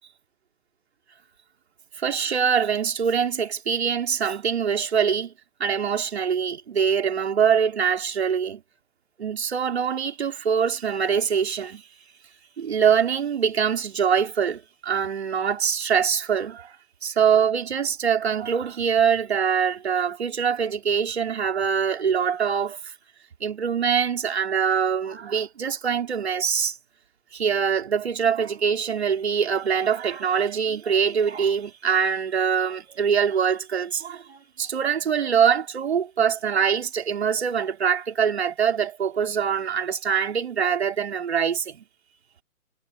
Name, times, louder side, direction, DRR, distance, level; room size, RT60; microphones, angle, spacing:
voice 1, 2.0-5.3 5.6-8.6 9.2-11.8 12.6-16.7 17.0-22.9 23.4-26.8 27.3-41.8, right 7 dB, 45° right, 3.2 m, -24 dB
figure-of-eight pair, 140°, 43 cm